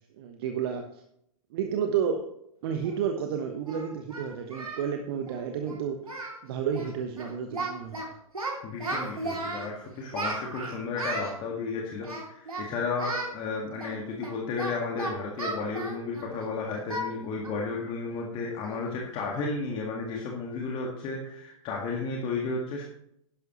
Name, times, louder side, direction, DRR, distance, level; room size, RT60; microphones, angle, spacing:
voice 1, 0.2-1.0 1.5-2.3 2.6-8.1, right 7 dB, 45° right, 5 dB, 1.1 m, -31 dB
Singing, 2.9-3.0 3.7-4.9 5.2-5.4 5.7-5.8 6.0-6.4 6.7-6.9 7.2-8.0 8.3-9.7 10.1-11.3 12.0-12.7 13.0-13.3 13.8-16.4 16.9-17.1 17.4-17.6 18.0-18.1 18.6-18.9, right 2 dB, 80° right, 2.8 m, -35 dB
voice 2, 8.6-22.8, left 4 dB, 30° left, 0 dB, 1.8 m, -33 dB
11.5 x 10.5 x 3.1 m, 0.75 s
figure-of-eight pair, 110°, 18 cm